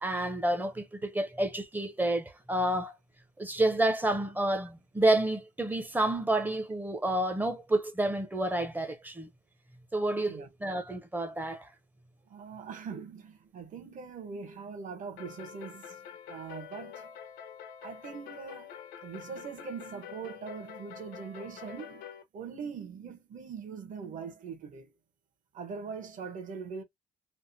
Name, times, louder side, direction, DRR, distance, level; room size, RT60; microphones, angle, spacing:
voice 1, 0.0-2.9 3.4-9.3 9.9-11.7 12.9-13.0, right 1 dB, 10° right, 0.6 m, -29 dB
voice 2, 12.3-16.0 16.3-17.1 17.8-18.7 19.0-24.9 25.5-26.8, right 6 dB, 50° right, 1.0 m, -42 dB
sound 1, 15.2-22.2, left 8 dB, 85° left, 0.8 m, -46 dB
3.4 x 2.0 x 2.6 m
cardioid pair, 110°, 17 cm